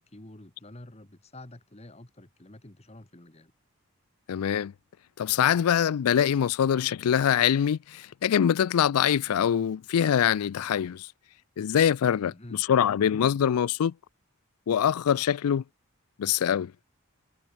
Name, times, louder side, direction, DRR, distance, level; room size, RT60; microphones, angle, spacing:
voice 1, 0.0-3.5 12.3-12.6, left 1 dB, 30° left, 1.6 m, -48 dB
voice 2, 4.3-4.7 5.2-11.1 11.6-13.9 14.7-15.6 16.2-16.7, left 9 dB, 85° left, 0.4 m, -24 dB
head